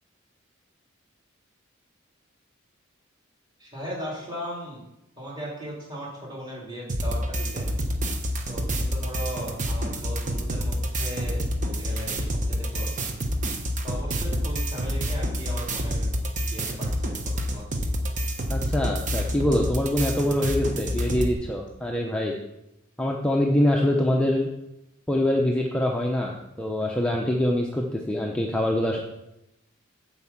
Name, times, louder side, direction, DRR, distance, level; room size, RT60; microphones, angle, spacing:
voice 1, 3.6-4.8 5.2-7.7 8.5-13.1 13.8-16.1 16.4-17.1 17.5-17.6, equal, 20° right, -5 dB, 3.6 m, -37 dB
sound 1, 6.9-21.3, equal, 35° right, 1.1 m, -28 dB
voice 2, 18.5-22.4 23.0-24.5 25.1-29.0, left 1 dB, 5° left, -1 dB, 0.7 m, -24 dB
7.9 x 5.5 x 7.3 m, 0.91 s
head